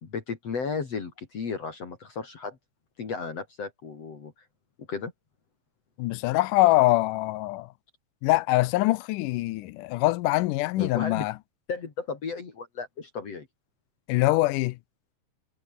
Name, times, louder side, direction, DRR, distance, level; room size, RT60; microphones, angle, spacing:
voice 1, 0.0-2.6 3.0-4.3 4.9-5.1 10.8-11.3 11.7-13.5, left 5 dB, 50° left, 4.0 m, -34 dB
voice 2, 6.0-7.7 8.2-11.4 14.1-14.8, left 19 dB, 90° left, 2.2 m, -23 dB
omnidirectional pair, 3.7 m